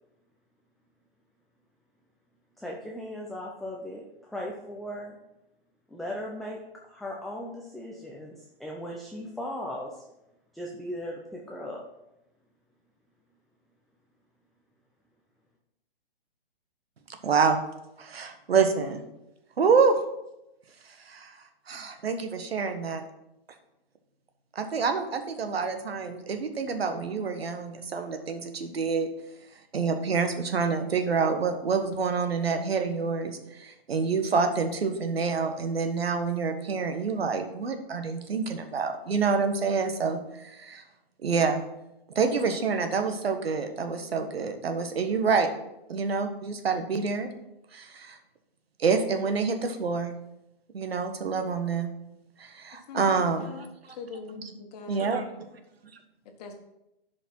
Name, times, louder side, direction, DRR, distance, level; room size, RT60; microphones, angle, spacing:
voice 1, 2.6-5.2 5.9-6.6 6.8-10.0 10.5-11.8, left 1 dB, ahead, -2 dB, 0.5 m, -37 dB
voice 2, 17.2-17.6 18.0-19.0 19.6-20.0 21.0-21.3 21.7-23.0 24.5-29.1 29.7-40.8 41.2-41.7 42.1-45.5 45.9-47.3 47.7-48.2 48.8-50.1 50.7-51.9 52.4-54.0 54.4-54.5 54.9-55.3, right 5 dB, 75° right, 7 dB, 1.5 m, -27 dB
voice 3, 52.9-53.7 54.0-55.1 56.4-56.5, left 4 dB, 40° left, 4 dB, 1.6 m, -41 dB
11.0 x 5.2 x 4.5 m, 0.88 s
hypercardioid pair, 135°, 30 cm